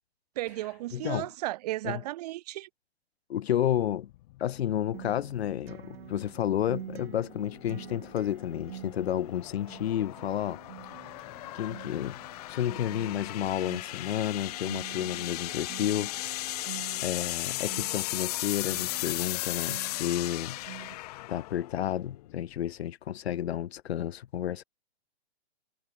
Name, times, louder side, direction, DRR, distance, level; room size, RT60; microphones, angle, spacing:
voice 1, 0.4-2.7, right 16 dB, 40° right, 0.6 m, -34 dB
voice 2, 0.9-1.3 1.8-2.0 3.3-4.1 4.4-10.6 10.9-11.0 11.5-12.2 12.5-16.4 17.0-20.6 21.3-24.6, left 11 dB, 85° left, 0.7 m, -31 dB
sound 1, 3.7-22.8, left 17 dB, 40° left, 0.8 m, -37 dB
Acoustic guitar, 4.9-20.9, right 11 dB, 70° right, 0.8 m, -47 dB
hypercardioid pair, 150°, 31 cm